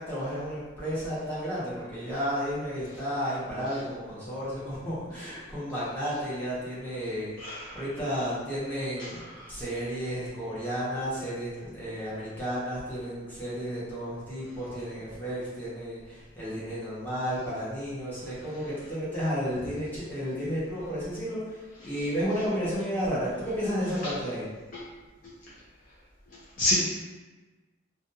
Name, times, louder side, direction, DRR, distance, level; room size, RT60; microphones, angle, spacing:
voice 1, 0.0-9.2 9.5-24.5, equal, 10° left, -11 dB, 0.9 m, -32 dB
voice 2, 7.4-7.8 9.0-9.1 9.4-9.5 24.0-24.1 26.6-26.7, left 1 dB, 45° left, -8 dB, 0.4 m, -28 dB
2.5 x 2.2 x 2.7 m, 1.3 s
head